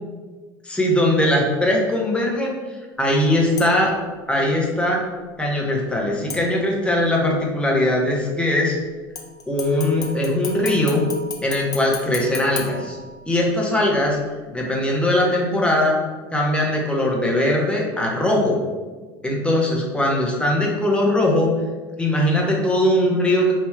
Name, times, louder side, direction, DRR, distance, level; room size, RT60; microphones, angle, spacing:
voice 1, 0.6-2.6 3.0-3.9 4.3-5.0 5.4-8.8 9.5-11.0 11.4-13.0 13.2-14.2 14.5-16.0 16.3-18.6 19.2-21.5 22.0-23.5, left 1 dB, 10° left, -2 dB, 1.2 m, -20 dB
sound 1, 3.6-4.0 6.3-7.0 9.2-13.5 14.0-14.1, left 4 dB, 35° left, 0.8 m, -35 dB
3.5 x 2.9 x 4.7 m, 1.3 s
hypercardioid pair, 85°, 12 cm